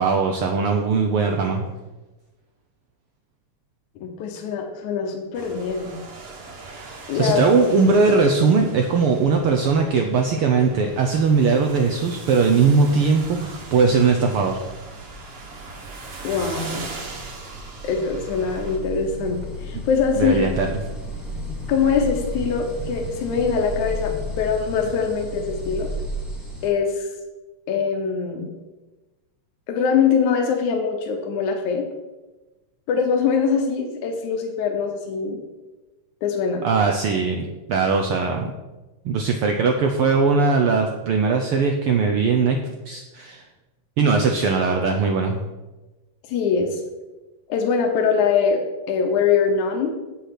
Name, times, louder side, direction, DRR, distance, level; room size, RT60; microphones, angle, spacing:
voice 1, 0.0-1.7 7.2-14.6 20.2-20.7 36.6-38.5 39.0-42.6 42.9-43.4 44.0-45.5, right 4 dB, 80° right, 3 dB, 1.2 m, -20 dB
voice 2, 4.0-5.9 7.1-7.5 16.2-16.9 17.8-20.4 21.7-25.9 26.6-27.1 27.7-28.5 29.7-31.9 32.9-35.5 36.2-36.6 46.3-46.8 47.5-49.9, left 6 dB, 80° left, 2 dB, 2.3 m, -23 dB
sound 1, 5.3-18.8, right 3 dB, 55° right, 2.4 m, -40 dB
sound 2, 9.4-26.7, equal, ahead, 1.9 m, -35 dB
8.2 x 6.6 x 5.8 m, 1.1 s
omnidirectional pair, 3.3 m